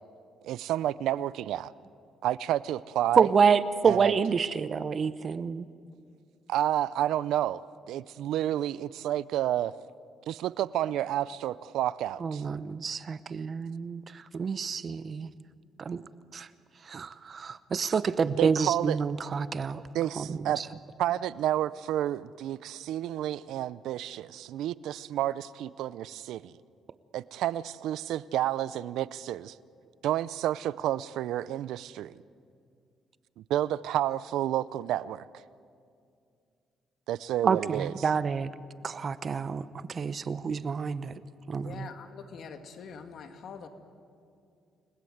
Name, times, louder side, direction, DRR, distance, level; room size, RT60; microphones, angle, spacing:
voice 1, 0.4-1.7 2.2-3.3 3.8-4.1 6.5-7.6 7.9-9.7 10.3-12.4 18.3-19.0 19.9-20.6 21.0-26.5 27.1-29.5 30.0-32.2 33.4-35.4 37.1-37.9, right 12 dB, 85° right, 0.5 m, -30 dB
voice 2, 3.2-5.7 12.2-14.0 14.3-15.3 15.8-16.1 16.3-16.5 16.9-19.8 20.2-20.6 37.4-38.5 38.8-41.1 41.5-41.9, right 6 dB, 45° right, 0.8 m, -28 dB
voice 3, 41.6-43.7, left 6 dB, 65° left, 2.2 m, -44 dB
29.5 x 20.5 x 8.0 m
cardioid pair, 90°, 0 cm